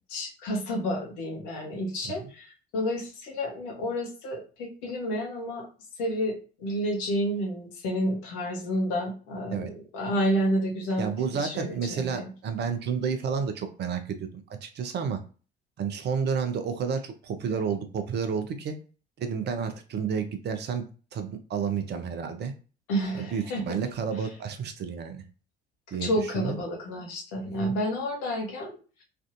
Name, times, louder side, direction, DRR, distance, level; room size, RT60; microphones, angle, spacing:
voice 1, 0.1-5.7 6.0-12.3 22.9-23.8 26.0-28.7, equal, 60° left, 0 dB, 1.0 m, -30 dB
voice 2, 11.0-14.3 14.6-15.2 15.8-18.8 19.2-20.9 21.1-22.5 23.2-25.2 25.9-26.6 27.6-27.7, right 6 dB, 35° right, 7 dB, 0.6 m, -30 dB
3.3 x 2.5 x 2.5 m, 0.37 s
figure-of-eight pair, 55°, 29 cm